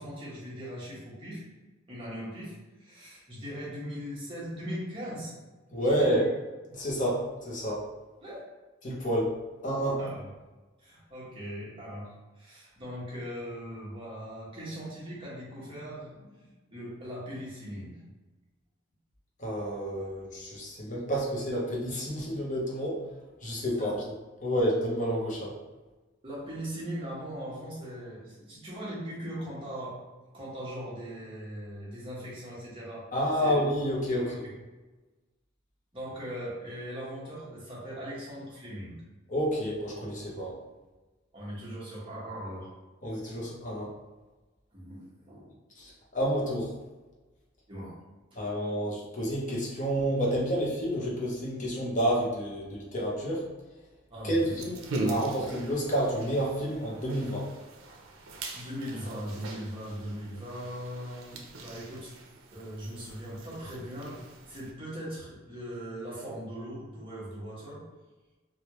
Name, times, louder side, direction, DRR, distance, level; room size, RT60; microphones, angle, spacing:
voice 1, 0.0-1.4 1.9-5.3 5.9-6.2 8.2-8.4 10.0-10.3 10.8-12.1 12.4-18.0 23.8-24.0 26.2-30.0 30.3-33.0 33.4-33.6 34.1-34.4 35.9-39.0 41.3-42.7 44.7-45.5 47.7-47.9 54.1-54.6 58.5-62.1 62.5-64.2 64.5-67.8, equal, 25° right, -7 dB, 1.1 m, -39 dB
voice 2, 5.7-6.3 6.7-7.8 8.8-9.3 9.6-10.0 19.4-23.0 23.4-24.0 24.4-25.6 33.1-34.4 39.3-40.6 43.0-43.9 45.8-46.7 48.3-53.4 54.2-57.5, equal, 40° left, -4 dB, 0.8 m, -29 dB
sound 1, 54.4-64.7, right 2 dB, 85° right, 0.5 m, -40 dB
3.2 x 2.4 x 2.9 m, 1.2 s
head